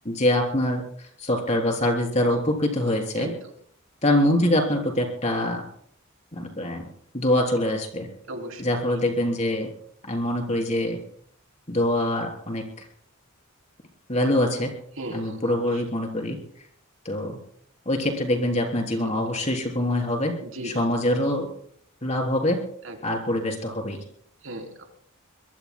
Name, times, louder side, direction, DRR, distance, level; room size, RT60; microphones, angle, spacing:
voice 1, 0.1-3.3 4.0-5.6 6.3-6.8 7.1-8.1 8.6-9.7 10.0-11.0 11.7-12.6 14.1-14.7 15.1-16.4 17.1-17.4 17.9-20.3 20.6-21.5 22.0-22.6 23.0-24.0, left 1 dB, 35° left, 2 dB, 3.5 m, -24 dB
voice 2, 8.3-8.8 15.0-15.8 19.0-19.1 20.4-20.7 22.8-23.0 24.4-24.8, right 1 dB, 70° right, 3 dB, 3.3 m, -36 dB
24.0 x 22.0 x 2.2 m, 0.62 s
head